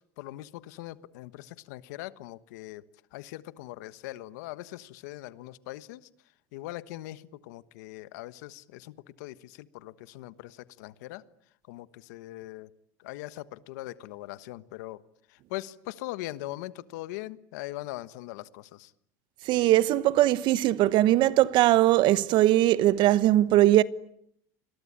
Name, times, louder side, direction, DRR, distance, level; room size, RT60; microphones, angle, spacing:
voice 1, 0.2-2.8 3.1-6.1 6.5-11.2 11.7-12.7 13.0-15.0 15.3-18.9, left 17 dB, 85° left, 1.3 m, -41 dB
voice 2, 19.5-23.8, right 14 dB, 60° right, 1.1 m, -20 dB
29.0 x 22.5 x 8.8 m
supercardioid pair, 115°, 9 cm